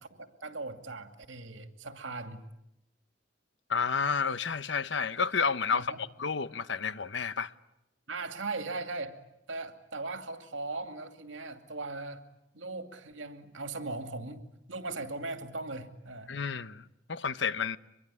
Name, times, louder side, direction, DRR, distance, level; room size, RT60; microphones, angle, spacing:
voice 1, 0.2-2.4 5.7-6.0 8.1-9.2 9.5-12.2 12.5-14.4 14.7-16.3, right 3 dB, 85° right, 2.5 m, -39 dB
voice 2, 3.7-7.5 16.3-17.8, left 5 dB, 70° left, 0.9 m, -31 dB
24.5 x 22.5 x 9.7 m
head